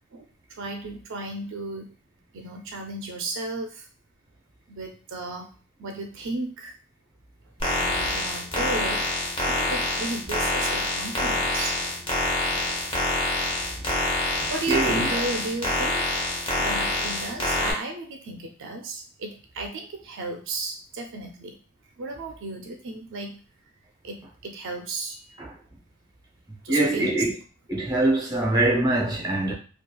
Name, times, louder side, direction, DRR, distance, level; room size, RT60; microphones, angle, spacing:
voice 1, 0.6-1.9 2.3-3.9 4.7-5.5 5.8-6.7 7.7-9.0 9.5-11.8 14.5-16.1 16.6-21.6 22.0-23.4 24.0-25.4 26.6-27.2, right 2 dB, 60° right, 0.4 m, -34 dB
sound 1, 7.6-17.7, left 1 dB, 25° left, 0.8 m, -26 dB
voice 2, 14.4-15.2 25.4-25.6 26.7-27.3 27.7-29.5, right 2 dB, 20° right, 0.6 m, -24 dB
3.0 x 2.3 x 2.2 m
head